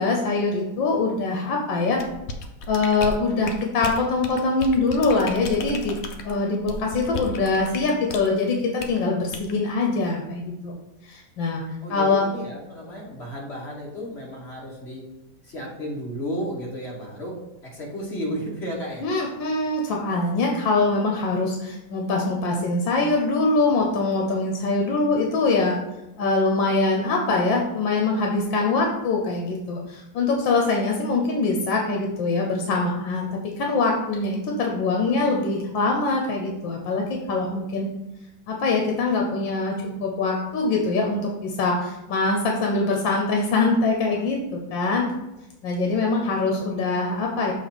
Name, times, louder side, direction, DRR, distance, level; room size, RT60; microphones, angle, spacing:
voice 1, 0.0-2.0 2.7-5.9 6.2-10.8 11.0-11.6 11.9-12.2 19.0-25.8 26.2-37.9 38.5-45.0 45.6-47.5, left 3 dB, 80° left, 0 dB, 1.6 m, -23 dB
sound 1, 2.0-8.3 8.8-9.0 9.3-9.5, left 3 dB, 60° left, 1.0 m, -34 dB
voice 2, 11.8-15.0 15.4-19.0, equal, 35° left, -3 dB, 1.6 m, -33 dB
7.0 x 3.0 x 6.0 m, 0.96 s
omnidirectional pair, 2.0 m